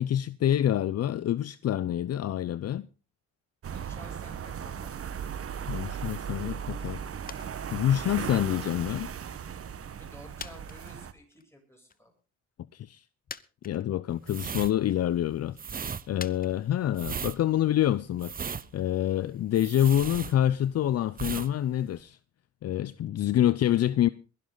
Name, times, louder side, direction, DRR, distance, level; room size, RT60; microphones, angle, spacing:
voice 1, 0.0-2.9 5.7-7.0 7.7-9.1 12.7-13.0 13.6-22.2 22.6-24.1, left 11 dB, 55° left, 0.6 m, -27 dB
sound 1, 3.6-11.1, right 8 dB, 50° right, 1.3 m, -37 dB
voice 2, 3.7-4.9 10.0-12.1, left 1 dB, 10° left, 7.9 m, -52 dB
sound 2, 7.3-7.6 7.9-9.1 9.6-9.7 10.4-11.5 11.9-12.0 12.9-13.0 13.3-14.1 14.6-15.2 16.2-20.3 20.6-20.7, left 6 dB, 30° left, 0.8 m, -47 dB
sound 3, 14.2-20.8 21.1-21.5 21.8-22.0, right 6 dB, 30° right, 0.8 m, -37 dB
21.5 x 12.0 x 4.0 m
cardioid pair, 90°, 30 cm